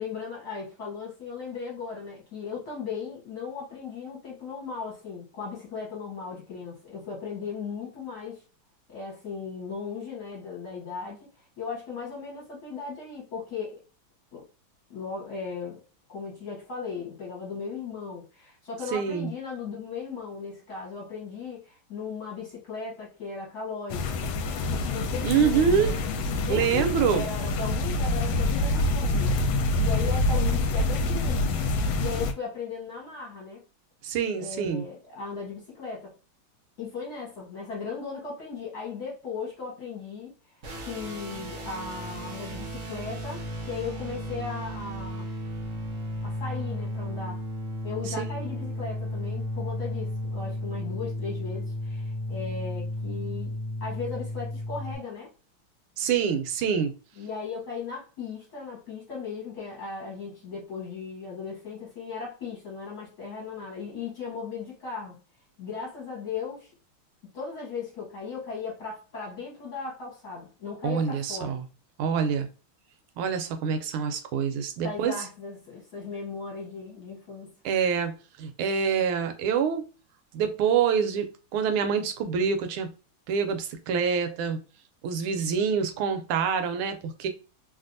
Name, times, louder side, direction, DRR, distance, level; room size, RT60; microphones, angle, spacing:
voice 1, 0.0-8.4 8.9-11.2 11.6-13.8 14.3-14.5 14.9-15.8 16.1-24.1 24.7-26.0 26.5-29.4 29.8-31.6 32.0-33.6 34.4-36.1 36.8-45.3 46.2-47.4 47.8-55.3 57.2-65.2 65.6-66.7 67.3-71.6 74.8-77.5, left 5 dB, 55° left, 1.3 m, -37 dB
voice 2, 18.9-19.3 25.2-25.9 26.5-27.2 34.0-34.8 48.2-48.3 56.0-56.9 70.8-71.6 72.0-72.5 73.2-75.1 77.6-78.1 78.4-79.8 80.3-82.9 83.3-84.6 85.0-87.3, right 7 dB, 80° right, 1.5 m, -26 dB
sound 1, 23.9-32.3, left 2 dB, 75° left, 1.3 m, -26 dB
sound 2, 40.6-55.0, left 1 dB, 65° right, 0.7 m, -34 dB
3.3 x 2.5 x 2.5 m
omnidirectional pair, 2.3 m